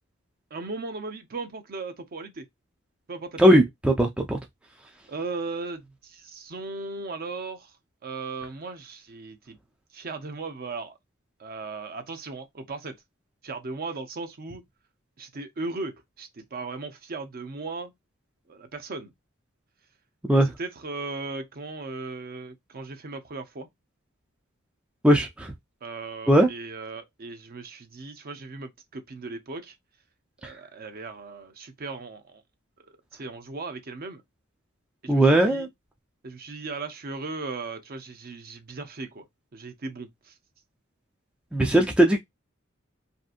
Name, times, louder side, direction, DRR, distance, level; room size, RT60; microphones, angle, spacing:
voice 1, 0.5-2.5 3.1-3.6 5.1-7.7 8.0-9.6 9.9-11.0 11.4-13.0 13.4-14.6 15.2-17.9 18.5-19.1 20.3-23.7 25.8-29.8 30.4-32.4 32.8-34.2 35.0-35.7 36.2-39.2 39.5-40.4, right 3 dB, 45° right, 0.6 m, -37 dB
voice 2, 3.4-4.4 20.3-20.5 25.0-25.5 26.3-26.5 30.4-30.5 35.1-35.7 41.5-42.2, right 1 dB, 5° right, 0.3 m, -19 dB
2.7 x 2.5 x 2.4 m
head